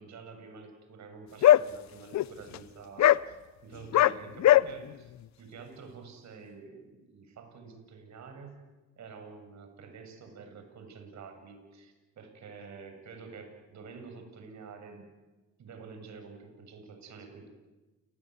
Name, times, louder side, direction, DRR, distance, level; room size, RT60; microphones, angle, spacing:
voice 1, 0.0-5.1 5.4-8.6 9.0-15.1 15.6-17.5, right 5 dB, 65° right, 5 dB, 7.6 m, -48 dB
sound 1, 1.4-1.6 2.1-2.2 2.5-2.6 3.0-3.2 3.9-4.1 4.4-4.6, left 13 dB, 65° left, 0.8 m, -19 dB
29.5 x 19.5 x 9.6 m, 1.2 s
cardioid pair, 90°, 30 cm